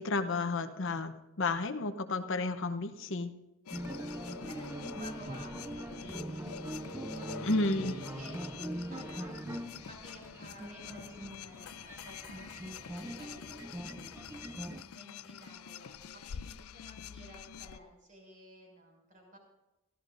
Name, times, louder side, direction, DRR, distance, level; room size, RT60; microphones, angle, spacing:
voice 1, 0.0-3.3 7.4-7.9, left 3 dB, 60° left, 8 dB, 0.8 m, -32 dB
sound 1, 3.7-17.8, left 8 dB, 90° left, 0.5 m, -47 dB
sound 2, 3.7-14.8, right 1 dB, 10° right, 0.4 m, -42 dB
voice 2, 4.5-7.6 8.2-19.4, equal, 40° right, 0 dB, 6.2 m, -53 dB
23.5 x 14.5 x 2.6 m, 0.96 s
head